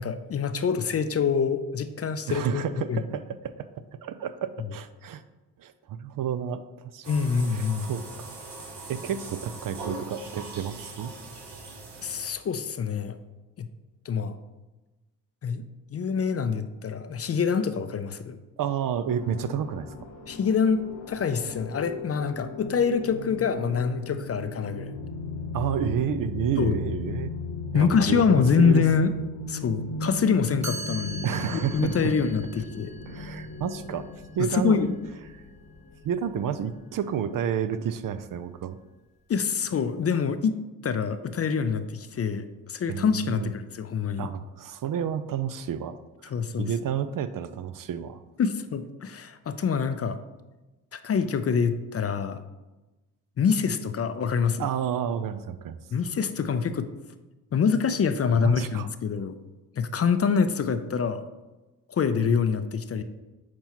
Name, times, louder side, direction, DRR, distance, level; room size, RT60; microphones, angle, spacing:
voice 1, 0.0-3.0 7.1-7.9 12.0-13.1 13.6-13.7 14.1-14.4 15.4-15.6 15.9-18.4 20.3-24.9 26.6-26.8 27.7-29.1 29.5-32.9 34.5-34.9 39.3-40.6 40.8-44.3 46.2-46.7 48.4-50.2 50.9-52.4 53.4-54.7 55.9-56.9 57.5-59.4 59.7-61.2 61.9-63.0, left 6 dB, 35° left, 10 dB, 0.5 m, -25 dB
voice 2, 2.3-3.7 4.0-5.2 5.6-7.1 7.5-8.3 8.9-11.1 18.6-19.9 25.5-27.3 27.7-28.8 31.2-32.1 33.1-34.1 34.4-34.9 36.0-38.8 42.9-43.5 44.2-46.0 46.2-48.2 54.6-55.8 58.3-58.9, right 8 dB, 55° right, 11 dB, 0.5 m, -30 dB
sound 1, 7.0-12.6, right 3 dB, 70° right, 1.2 m, -41 dB
sound 2, 19.1-36.2, left 3 dB, 75° left, 1.1 m, -37 dB
Chime, 30.6-36.5, right 2 dB, 15° right, 1.2 m, -43 dB
7.3 x 4.4 x 2.9 m, 1.1 s
supercardioid pair, 45°, 42 cm